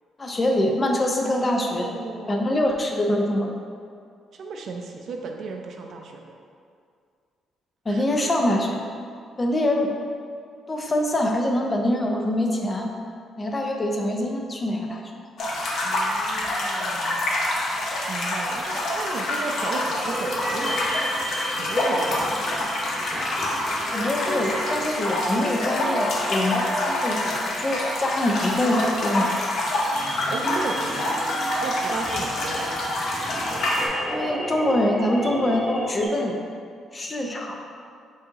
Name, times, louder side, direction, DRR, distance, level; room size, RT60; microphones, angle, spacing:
voice 1, 0.2-1.9 2.3-3.5 7.9-8.8 9.4-9.9 10.7-12.9 13.4-15.0 23.9-29.3 34.1-36.4 36.9-37.6, left 1 dB, 30° left, 1 dB, 0.5 m, -24 dB
voice 2, 1.2-2.5 4.3-6.4 7.9-8.0 15.8-17.2 18.1-20.8 21.5-22.5 30.3-31.1 31.6-32.7, right 4 dB, 60° right, 2 dB, 0.5 m, -34 dB
sound 1, 15.4-33.9, left 1 dB, 65° left, 0.7 m, -27 dB
sound 2, 20.0-36.1, equal, 10° right, 1.1 m, -33 dB
4.7 x 2.7 x 3.8 m, 2.2 s
cardioid pair, 90°, 0 cm